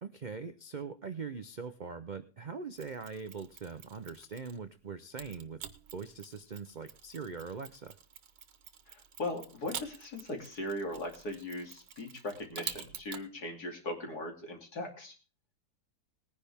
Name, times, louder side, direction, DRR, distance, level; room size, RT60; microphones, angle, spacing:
voice 1, 0.0-5.6 5.9-8.0, right 5 dB, 60° right, 10 dB, 0.4 m, -42 dB
Mechanisms, 2.7-4.7 5.2-13.3, right 9 dB, 90° right, 1.7 m, -47 dB
voice 2, 8.9-15.1, left 1 dB, 65° left, 2 dB, 3.4 m, -39 dB
19.5 x 10.0 x 3.5 m, 0.35 s
omnidirectional pair, 1.8 m